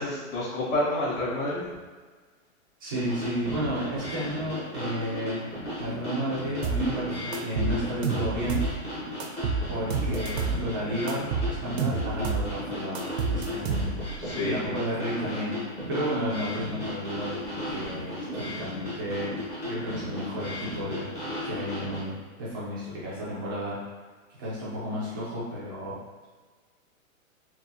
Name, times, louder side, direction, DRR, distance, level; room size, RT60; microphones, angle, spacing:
voice 1, 0.0-1.6 14.2-14.6, left 1 dB, 70° left, -8 dB, 1.3 m, -28 dB
voice 2, 2.8-5.4 5.8-8.6 9.7-13.8 14.4-15.6 15.9-19.3 19.6-21.1 21.4-23.8 24.4-26.0, equal, 20° right, -8 dB, 0.3 m, -32 dB
sound 1, 2.9-22.0, left 1 dB, 15° left, 0.6 m, -36 dB
sound 2, 6.6-6.9 7.3-8.8 9.2-10.6 11.1-12.5 12.9-14.2, right 4 dB, 85° right, 0.6 m, -29 dB
3.4 x 2.2 x 2.6 m, 1.4 s
hypercardioid pair, 140°, 42 cm